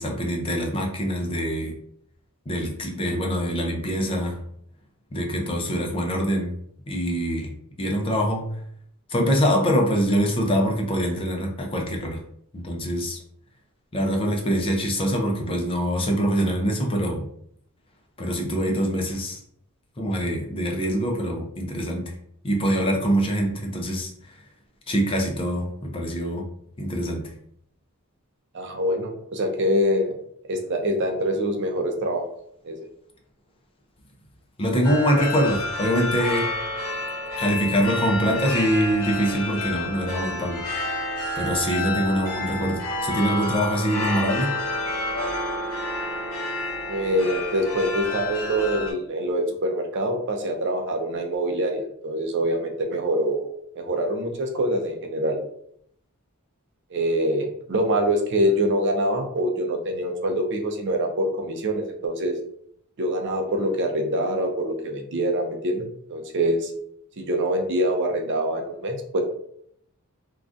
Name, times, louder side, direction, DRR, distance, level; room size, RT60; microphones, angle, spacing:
voice 1, 0.0-1.7 2.5-4.4 5.1-6.5 6.9-7.5 7.8-8.4 9.1-12.2 12.5-13.2 13.9-17.3 18.2-19.4 20.0-22.2 22.4-24.4 24.9-26.4 26.8-27.3 34.6-36.5 37.4-40.6 41.3-44.5, equal, 25° left, 1 dB, 0.5 m, -24 dB
voice 2, 28.5-30.1 30.5-32.3 32.6-32.8 46.9-53.5 53.7-55.4 56.9-62.3 63.0-66.7 67.2-69.2, right 1 dB, 55° right, 3 dB, 0.5 m, -25 dB
sound 1, 34.8-48.9, left 2 dB, 75° left, 0.9 m, -29 dB
3.5 x 2.3 x 2.5 m, 0.69 s
head